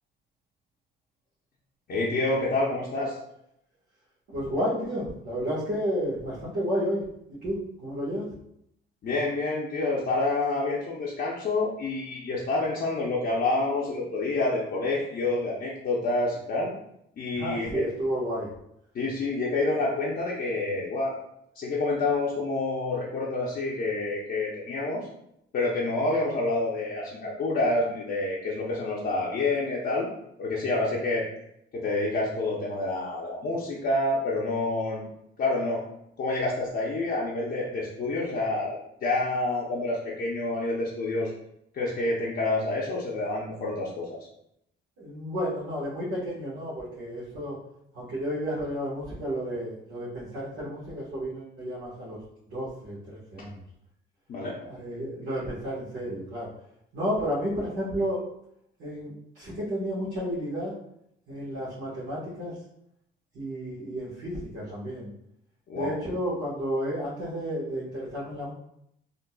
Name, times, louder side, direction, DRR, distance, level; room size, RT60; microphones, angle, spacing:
voice 1, 1.9-3.2 9.0-16.7 17.2-17.8 18.9-21.2 21.6-25.1 25.5-30.1 30.4-31.3 31.7-35.0 35.4-35.8 36.2-41.3 41.7-44.2 54.3-54.6 65.7-65.9, left 2 dB, 50° left, -5 dB, 0.7 m, -28 dB
voice 2, 4.3-7.0 7.4-8.3 17.3-18.5 45.0-47.6 47.9-52.2 52.5-53.6 54.6-56.5 56.9-58.2 58.8-60.7 61.3-62.6 63.3-65.1 65.7-68.5, equal, 80° right, -9 dB, 1.3 m, -31 dB
3.8 x 2.5 x 2.3 m, 0.76 s
cardioid pair, 90°, 20 cm